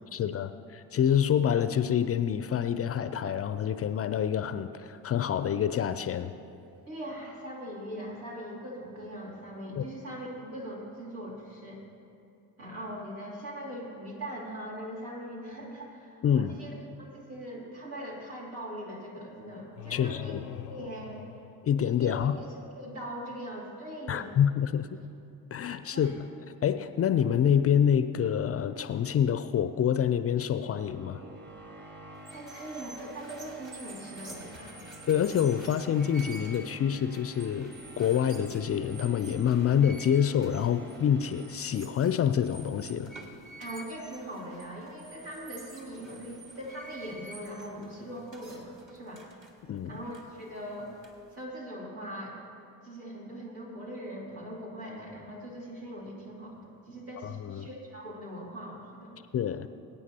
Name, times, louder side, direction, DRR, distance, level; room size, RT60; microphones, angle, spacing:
voice 1, 0.1-6.3 9.8-9.9 16.2-16.5 19.9-20.4 21.6-22.4 24.1-24.9 25.5-26.3 26.6-31.2 35.1-43.1 49.7-49.9 57.2-57.7 59.3-59.7, left 9 dB, 30° left, 12 dB, 0.5 m, -27 dB
voice 2, 6.9-11.8 12.6-21.3 21.8-22.5 22.8-24.3 25.9-26.1 32.3-34.8 43.6-49.2 49.8-50.9 51.3-52.4 52.8-59.2, equal, 80° right, -5 dB, 3.0 m, -41 dB
sound 1, 19.8-22.3, left 11 dB, 85° left, 0.5 m, -44 dB
sound 2, 29.6-42.6, right 1 dB, 25° right, 1.5 m, -50 dB
sound 3, 32.2-51.4, right 2 dB, 40° right, 2.1 m, -50 dB
22.0 x 9.3 x 2.9 m, 2.6 s
hypercardioid pair, 50°, 46 cm